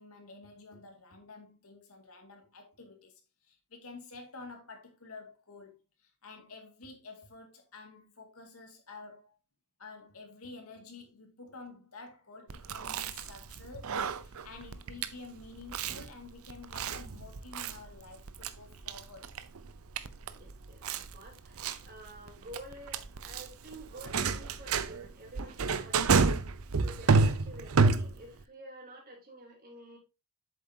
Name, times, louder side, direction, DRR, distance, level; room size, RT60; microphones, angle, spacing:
voice 1, 0.0-9.4 9.8-19.3 21.3-21.4 25.6-25.9 26.7-26.9, left 3 dB, 75° left, 2.2 m, -50 dB
Chewing mastication, 12.5-28.4, right 4 dB, 75° right, 0.7 m, -31 dB
voice 2, 20.3-26.3 26.8-30.0, right 1 dB, 45° right, 3.2 m, -50 dB
8.3 x 7.2 x 2.8 m
head